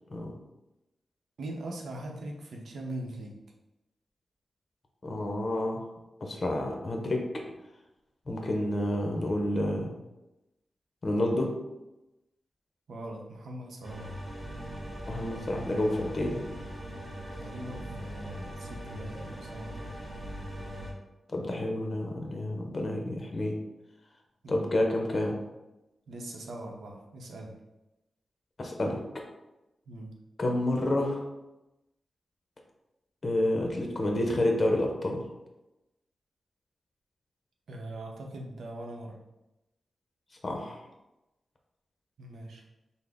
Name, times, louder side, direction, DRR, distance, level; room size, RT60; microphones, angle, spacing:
voice 1, 1.4-3.4 12.9-14.1 17.3-20.0 24.4-24.7 26.1-27.6 29.9-30.1 37.7-39.2 42.2-42.6, right 1 dB, 80° right, 0 dB, 0.7 m, -41 dB
voice 2, 5.0-5.8 6.2-7.2 8.3-9.9 11.0-11.5 15.1-16.4 21.3-23.5 24.5-25.4 28.6-29.0 30.4-31.2 33.2-35.2 40.4-40.8, left 1 dB, 35° left, 2 dB, 0.7 m, -29 dB
sound 1, 13.8-20.9, equal, ahead, 1.3 m, -40 dB
6.0 x 2.1 x 3.5 m, 0.97 s
wide cardioid pair, 150°, 0 cm